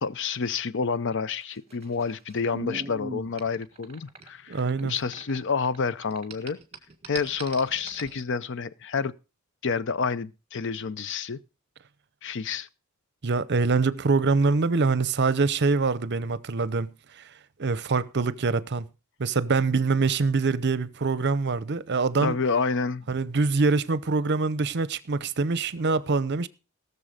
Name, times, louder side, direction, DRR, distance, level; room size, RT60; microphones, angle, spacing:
voice 1, 0.0-6.6 7.1-9.1 9.6-11.4 12.2-12.7 22.2-23.1, left 5 dB, 60° left, 0.6 m, -29 dB
sound 1, 1.4-5.8 6.0-8.2, right 2 dB, 30° right, 1.7 m, -40 dB
voice 2, 4.5-5.0 13.2-16.9 17.2-17.3 17.6-18.9 19.2-22.4 23.1-26.5, right 4 dB, 55° right, 0.7 m, -24 dB
18.0 x 6.9 x 5.0 m
head